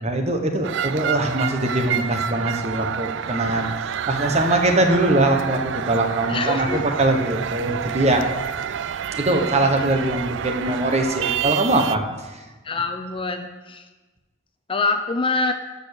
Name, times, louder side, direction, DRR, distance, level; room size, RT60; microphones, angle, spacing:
voice 1, 0.0-8.2 9.2-12.4, right 2 dB, 35° right, 5 dB, 1.2 m, -22 dB
sound 1, 0.6-12.0, right 8 dB, 65° right, 0.4 m, -28 dB
voice 2, 6.3-6.8 12.6-13.8 14.7-15.5, left 3 dB, 25° left, 7 dB, 0.7 m, -25 dB
13.0 x 5.4 x 6.6 m, 1.2 s
head